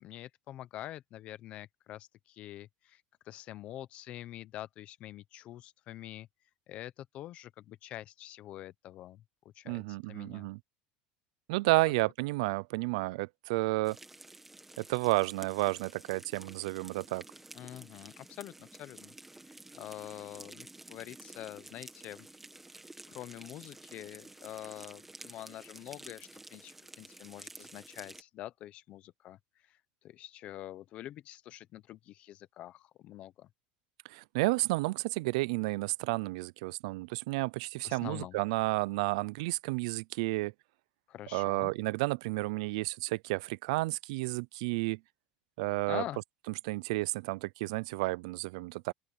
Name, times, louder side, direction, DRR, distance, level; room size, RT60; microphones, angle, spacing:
voice 1, 0.0-3.0 3.3-6.3 6.7-9.2 9.6-9.8 10.1-10.5 11.8-11.9 17.5-19.1 19.7-22.3 23.1-29.4 30.0-33.5 37.8-38.4 41.1-41.7 45.9-46.2, left 13 dB, 35° left, 0.8 m, -45 dB
voice 2, 9.7-10.6 11.5-14.0 14.8-17.2 34.1-40.5 41.3-45.0 45.6-46.0 46.6-48.9, right 23 dB, 75° right, 0.4 m, -31 dB
sound 1, 13.8-28.2, right 2 dB, 5° right, 1.6 m, -51 dB
open air
cardioid pair, 170°, 3 cm